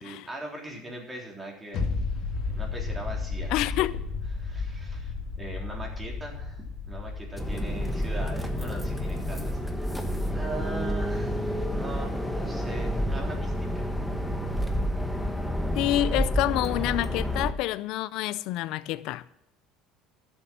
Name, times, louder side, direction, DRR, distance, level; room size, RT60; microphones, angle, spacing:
voice 1, 0.0-1.8 2.5-4.0 4.3-9.9 10.3-13.9, right 1 dB, 15° right, 3.7 m, -40 dB
sound 1, 1.7-13.1 13.4-13.5, left 4 dB, 50° left, 2.3 m, -35 dB
voice 2, 3.5-4.0 15.7-19.2, left 16 dB, 65° left, 0.5 m, -28 dB
sound 2, 7.4-17.5, equal, ahead, 1.2 m, -29 dB
13.0 x 7.3 x 6.2 m
cardioid pair, 125°, 0 cm